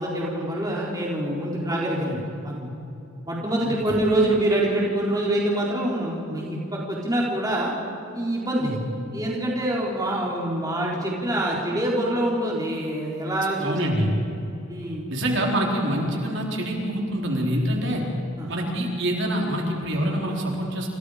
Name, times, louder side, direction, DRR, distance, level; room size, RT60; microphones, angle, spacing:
voice 1, 0.0-2.7 3.3-7.7 8.1-8.7 9.1-13.8 14.7-15.0 18.4-18.5, right 1 dB, 15° right, -4 dB, 3.9 m, -25 dB
voice 2, 3.6-4.0 8.6-8.8 13.6-14.1 15.1-18.0 18.5-20.9, right 1 dB, 55° right, -1 dB, 4.3 m, -26 dB
28.0 x 27.5 x 5.1 m, 2.8 s
head